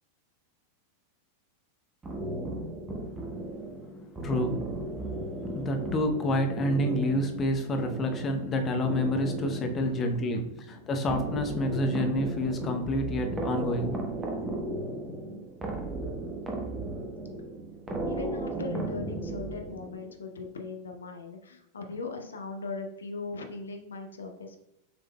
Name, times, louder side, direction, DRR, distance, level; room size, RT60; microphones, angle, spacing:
sound 1, 2.0-20.1, right 2 dB, 15° right, 0.9 m, -36 dB
voice 1, 4.2-4.6 5.5-14.0 14.4-14.5, left 1 dB, 25° left, 4 dB, 0.7 m, -28 dB
voice 2, 9.7-10.4 10.7-10.9 18.1-24.6, left 4 dB, 70° left, 4 dB, 0.6 m, -39 dB
6.7 x 3.5 x 2.2 m, 0.84 s
figure-of-eight pair, 90°, 0 cm